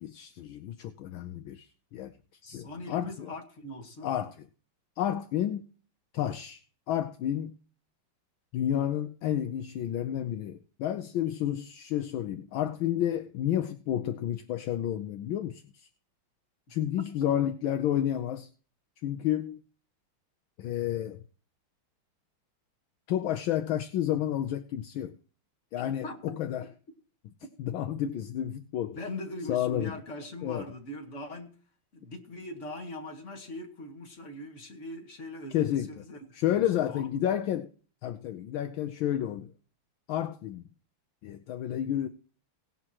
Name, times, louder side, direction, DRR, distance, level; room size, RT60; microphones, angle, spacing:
voice 1, 0.0-2.2 2.5-3.3 4.0-4.4 5.0-5.7 6.1-6.6 6.9-7.5 8.5-15.9 16.7-18.5 19.0-19.6 20.6-21.2 23.1-25.2 25.7-26.7 27.6-29.0 29.5-29.9 30.4-30.7 35.5-35.9 36.3-37.7 38.0-39.5 40.1-40.7 41.2-42.1, left 11 dB, 75° left, 1.4 m, -30 dB
voice 2, 2.4-4.1 26.0-26.4 29.0-31.5 31.9-36.2 36.5-37.2, left 1 dB, 35° left, 2.3 m, -41 dB
17.5 x 11.0 x 3.0 m
omnidirectional pair, 2.3 m